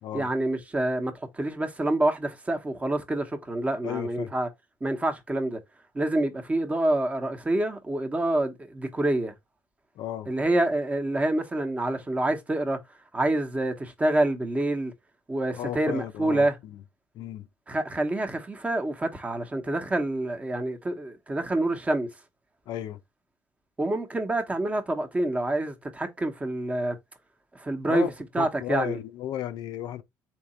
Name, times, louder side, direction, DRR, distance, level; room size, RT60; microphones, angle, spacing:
voice 1, 0.1-4.5 4.8-5.6 5.9-9.3 10.3-12.8 13.1-14.9 15.3-16.6 17.7-22.1 23.8-27.0 27.5-29.0, right 1 dB, 20° right, 0.9 m, -27 dB
voice 2, 3.8-4.3 10.0-10.3 15.6-16.8 17.1-17.5 22.7-23.0 27.8-28.1 28.4-30.0, left 11 dB, 70° left, 0.5 m, -34 dB
3.6 x 2.8 x 4.2 m
cardioid pair, 95°, 8 cm